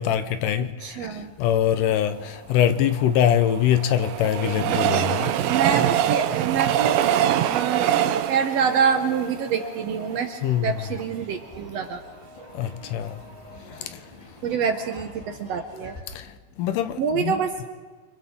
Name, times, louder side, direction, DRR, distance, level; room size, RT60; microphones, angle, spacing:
voice 1, 0.0-0.7 1.0-1.1 1.4-5.3 10.4-10.8 12.5-13.2 16.2-16.3 16.6-17.4, left 10 dB, 80° left, 2.3 m, -23 dB
voice 2, 0.6-1.3 4.9-7.1 7.5-7.9 8.3-12.0 14.4-16.0 17.0-17.5, right 7 dB, 65° right, 1.8 m, -26 dB
Train, 2.9-10.2 10.7-10.8 11.0-11.1, right 11 dB, 85° right, 2.4 m, -24 dB
sound 1, 4.9-16.0, equal, 15° left, 2.0 m, -43 dB
29.0 x 25.0 x 3.7 m
omnidirectional pair, 3.9 m